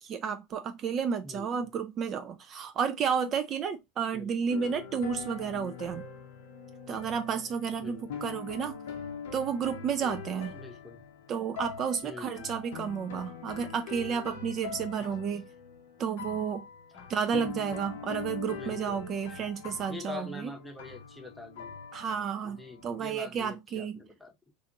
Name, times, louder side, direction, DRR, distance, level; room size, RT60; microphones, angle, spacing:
voice 1, 0.0-6.0 6.9-8.8 9.3-10.5 11.3-15.5 16.0-16.7 17.1-20.5 21.9-24.0, right 7 dB, 40° right, 0.4 m, -32 dB
voice 2, 1.2-1.6 4.1-4.4 7.8-8.2 10.5-11.0 12.0-12.6 16.9-17.1 18.5-19.4 19.9-21.7 22.4-24.5, left 3 dB, 10° left, 0.8 m, -45 dB
sound 1, 4.5-23.1, left 6 dB, 75° left, 0.6 m, -43 dB
2.4 x 2.4 x 2.9 m
hypercardioid pair, 90°, 0 cm